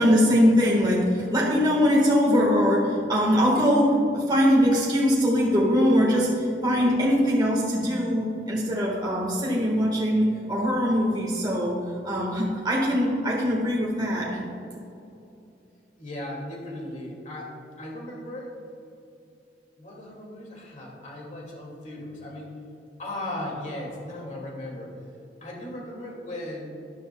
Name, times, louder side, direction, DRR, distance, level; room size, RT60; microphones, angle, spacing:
voice 1, 0.0-11.8 12.0-14.5, equal, 25° right, -4 dB, 1.4 m, -22 dB
voice 2, 16.0-18.5 19.8-22.6 23.0-25.0 25.4-26.7, left 1 dB, 45° left, -2 dB, 2.1 m, -37 dB
12.5 x 10.5 x 2.2 m, 2.7 s
head